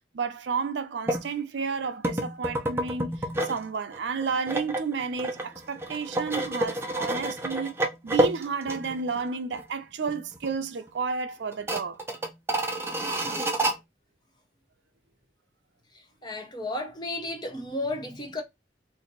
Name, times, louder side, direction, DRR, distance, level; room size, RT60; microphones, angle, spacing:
voice 1, 0.1-3.1 3.5-7.7 8.0-12.0, right 5 dB, 80° right, 0.5 m, -31 dB
sound 1, 1.1-1.3 2.0-3.6 3.9-9.2 9.5-9.6 10.1-10.6 10.9-11.0 11.5-13.8, right 1 dB, 15° right, 0.5 m, -29 dB
voice 2, 16.2-18.4, left 2 dB, 25° left, 0.7 m, -33 dB
2.7 x 2.6 x 4.0 m
head